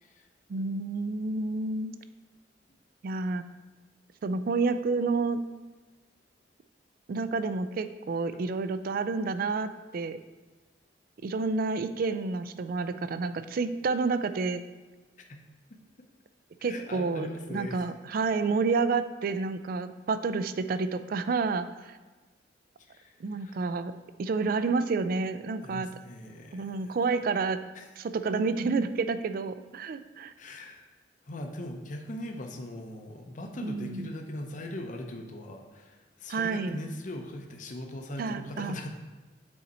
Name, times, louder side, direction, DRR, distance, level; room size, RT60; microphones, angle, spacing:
voice 1, 0.5-1.9 3.0-3.4 4.2-5.4 7.1-10.2 11.2-14.6 16.6-22.0 23.2-23.9 24.2-25.9 26.5-27.6 28.0-30.3 33.6-34.1 36.3-36.8 38.2-38.8, right 4 dB, 50° right, 11 dB, 0.3 m, -29 dB
voice 2, 16.6-17.8 22.9-23.1 23.4-23.7 25.6-27.0 27.7-27.9 30.4-30.8 31.3-38.9, left 1 dB, 45° left, 3 dB, 0.7 m, -40 dB
6.4 x 4.2 x 4.2 m, 1.3 s
head